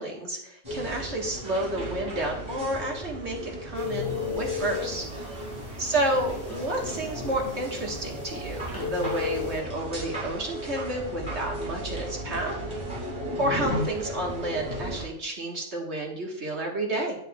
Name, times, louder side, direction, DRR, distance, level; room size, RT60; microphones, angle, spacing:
voice 1, 0.0-5.0 5.8-12.6 13.4-17.2, right 1 dB, 75° right, -1 dB, 2.0 m, -30 dB
sound 1, 0.6-15.1, equal, 25° right, 2.8 m, -35 dB
sound 2, 3.8-9.6, left 7 dB, 20° left, 1.5 m, -36 dB
10.5 x 6.7 x 2.5 m, 0.73 s
omnidirectional pair, 1.2 m